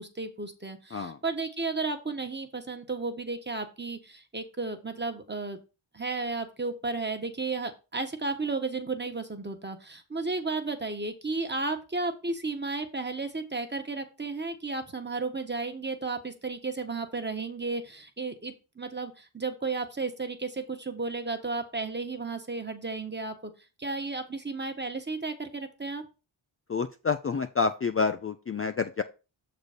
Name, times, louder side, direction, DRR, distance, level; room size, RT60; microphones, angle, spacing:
voice 1, 0.0-5.6 5.9-23.5 23.8-26.0, right 3 dB, 20° right, 6 dB, 1.3 m, -33 dB
voice 2, 26.7-29.0, left 5 dB, 30° left, 8 dB, 0.5 m, -28 dB
6.7 x 4.1 x 5.0 m, 0.31 s
cardioid pair, 65°, 49 cm